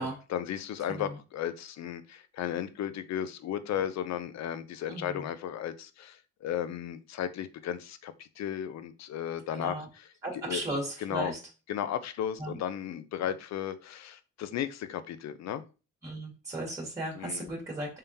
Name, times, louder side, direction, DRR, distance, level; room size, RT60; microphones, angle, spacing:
voice 1, 0.0-10.6 11.0-11.3 11.7-15.6 17.2-17.5, left 10 dB, 60° left, 13 dB, 0.5 m, -35 dB
voice 2, 4.9-5.3 9.5-9.8 10.2-11.4 12.4-12.6 16.0-18.0, right 1 dB, 10° right, -2 dB, 1.8 m, -36 dB
3.6 x 3.3 x 2.8 m, 0.33 s
cardioid pair, 90°, 30 cm